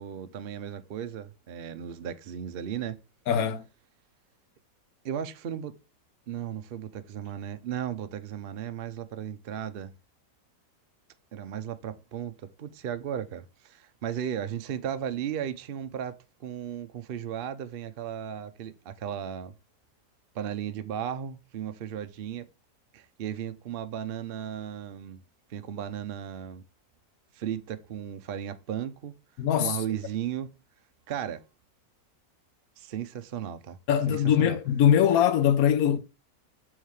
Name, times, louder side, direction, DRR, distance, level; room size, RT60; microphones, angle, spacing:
voice 1, 0.0-3.0 5.0-5.7 6.3-10.0 11.3-19.5 20.3-22.5 22.9-25.2 25.5-26.6 27.3-29.2 29.6-30.5 31.1-31.4 32.8-33.8 34.1-34.6, right 9 dB, 80° right, 0.5 m, -35 dB
voice 2, 3.3-3.6 29.4-29.8 33.9-36.0, left 9 dB, 60° left, 1.2 m, -22 dB
7.3 x 3.7 x 4.7 m
omnidirectional pair, 1.8 m